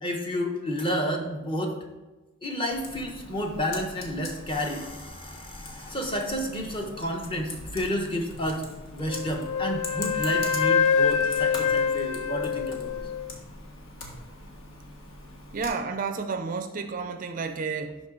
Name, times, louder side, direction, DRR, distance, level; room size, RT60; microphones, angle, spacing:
voice 1, 0.0-1.8 2.4-8.7 8.9-13.1, equal, 25° left, 2 dB, 0.9 m, -31 dB
Computer keyboard, 2.7-15.7, left 2 dB, 60° left, 1.4 m, -42 dB
Wind instrument woodwind instrument, 9.1-13.3, left 6 dB, 90° left, 0.4 m, -25 dB
voice 2, 15.5-18.0, right 4 dB, 35° right, 8 dB, 0.4 m, -31 dB
11.5 x 4.0 x 3.8 m, 1.2 s
head